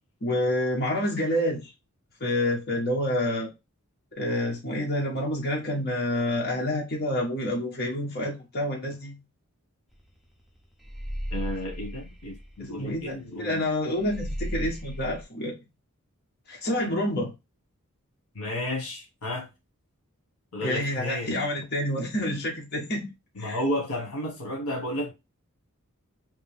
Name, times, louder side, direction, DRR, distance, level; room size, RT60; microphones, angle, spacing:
voice 1, 0.2-1.7 2.2-3.5 4.1-9.2 12.6-15.6 16.5-17.3 20.6-23.1 23.4-23.6, left 1 dB, 45° left, 1.2 m, -28 dB
sound 1, 9.9-10.1 10.4-13.2 13.5-13.6 14.0-15.2, equal, ahead, 0.7 m, -35 dB
voice 2, 11.3-13.6 18.3-19.5 20.5-21.3 23.4-25.1, left 1 dB, 80° left, 1.4 m, -32 dB
3.3 x 2.8 x 3.4 m
head